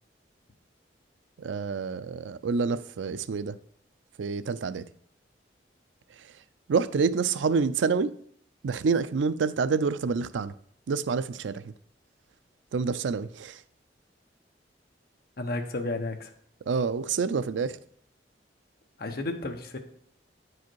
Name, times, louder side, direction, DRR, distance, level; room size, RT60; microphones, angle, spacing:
voice 1, 1.4-3.6 4.2-4.9 6.2-6.3 6.7-8.1 8.6-10.5 10.9-11.7 12.7-13.6 16.7-17.8, right 5 dB, 85° right, 0.4 m, -27 dB
voice 2, 15.4-16.3 19.0-19.8, left 2 dB, 55° left, 1.0 m, -32 dB
9.2 x 4.9 x 4.6 m
head